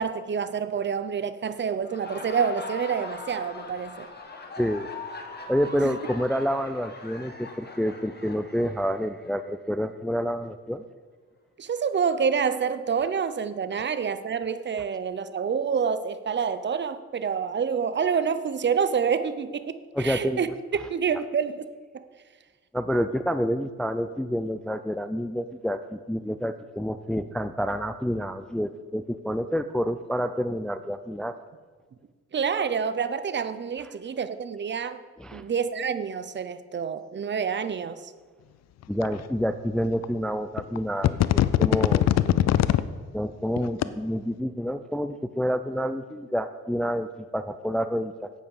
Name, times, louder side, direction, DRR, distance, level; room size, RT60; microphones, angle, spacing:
voice 1, 0.0-4.1 5.7-5.9 11.6-20.5 20.8-21.6 32.3-35.0 35.3-38.1, right 6 dB, 35° right, 12 dB, 0.7 m, -27 dB
Laughter, 1.7-9.4, left 3 dB, 35° left, 1.7 m, -41 dB
voice 2, 4.6-4.9 5.5-10.8 19.9-20.5 22.7-31.4 35.2-35.5 38.9-42.1 43.1-48.3, equal, 5° left, 11 dB, 0.4 m, -28 dB
sound 1, 39.0-39.1 40.0-40.1 40.6-40.8 41.0-42.8 43.6-43.8, left 12 dB, 60° left, 0.5 m, -20 dB
8.9 x 8.5 x 6.6 m, 1.5 s
cardioid pair, 90°, 30 cm